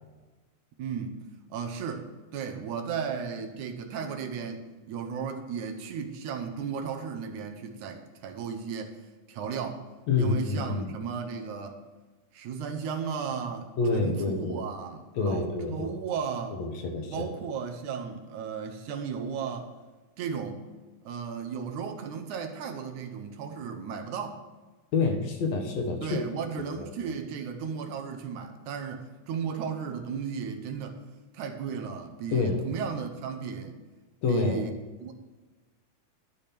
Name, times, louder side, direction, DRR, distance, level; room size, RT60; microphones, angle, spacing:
voice 1, 0.8-1.2 1.5-9.0 9.3-9.9 10.2-11.8 12.3-16.6 17.1-19.7 20.2-20.7 21.1-24.4 26.0-31.0 31.3-33.8 34.3-34.8 35.0-35.1, right 6 dB, 75° right, 5 dB, 2.3 m, -35 dB
voice 2, 10.1-10.9 13.8-14.6 15.2-15.9 16.5-17.3 24.9-26.2 26.6-26.9 32.3-32.6 34.2-34.6, left 4 dB, 65° left, 3 dB, 2.2 m, -27 dB
12.5 x 5.2 x 5.9 m, 1.2 s
omnidirectional pair, 3.5 m